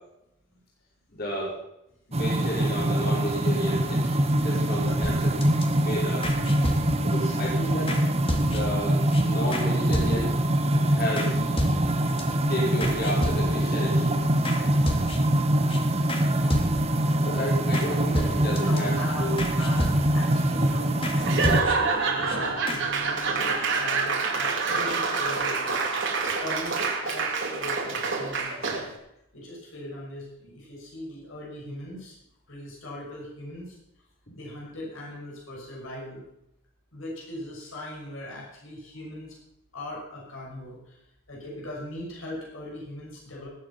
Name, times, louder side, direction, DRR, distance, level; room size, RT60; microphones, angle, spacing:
voice 1, 1.1-1.6 2.1-4.1 4.4-5.5 5.8-6.3 7.0-8.0 8.4-10.3 10.7-11.4 12.5-14.2 17.2-18.9 19.2-19.4 21.4-21.5 24.0-24.1 27.4-27.5, equal, 50° left, -6 dB, 5.4 m, -32 dB
sound 1, 2.1-21.6, right 1 dB, 30° right, 1.3 m, -24 dB
sound 2, 5.0-5.6 6.2-7.2 7.9-8.0 8.3-8.8 9.1-9.2 9.5-9.7 9.9-10.5 11.2-11.3 11.6-12.2 12.8-13.7 14.4-14.6 14.9-15.4 15.7-15.8 16.1-16.2 16.5-17.0 17.7-17.9 18.1-18.8 19.4-20.3 21.0-21.2 21.4-22.0 22.3-22.4 22.7-22.8, left 1 dB, 25° left, 2.0 m, -31 dB
voice 2, 5.7-6.0 6.6-7.4 18.6-25.9 26.4-28.8 29.3-32.2 32.5-33.8 34.3-36.2 36.9-39.4 39.7-41.0 41.3-43.5, left 1 dB, 75° left, -4 dB, 6.1 m, -40 dB
Laughter / Applause / Crowd, 21.2-29.0, right 4 dB, 60° right, 2.7 m, -27 dB
19.5 x 8.4 x 5.8 m, 0.83 s
head